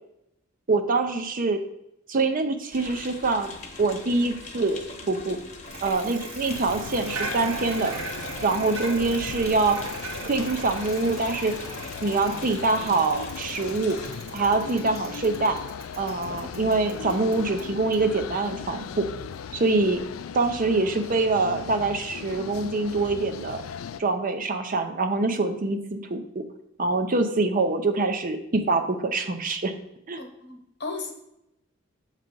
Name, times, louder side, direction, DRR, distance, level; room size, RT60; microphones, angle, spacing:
voice 1, 0.7-1.6 2.1-3.5 3.8-5.4 5.8-7.9 8.4-9.8 10.2-11.7 12.0-14.0 14.3-15.6 16.0-19.1 19.5-20.0 20.3-23.6 24.0-26.5 26.8-29.7 30.1-30.2, right 3 dB, 45° right, 6 dB, 0.6 m, -25 dB
sound 1, 2.7-14.1, left 3 dB, 40° left, 1.0 m, -42 dB
Bicycle, 5.7-18.8, right 2 dB, 75° right, 1.5 m, -39 dB
sound 2, 6.5-24.0, left 7 dB, 80° left, 0.4 m, -38 dB
voice 2, 30.2-31.1, left 3 dB, 55° left, 3 dB, 1.2 m, -36 dB
7.7 x 3.3 x 5.2 m, 0.82 s
head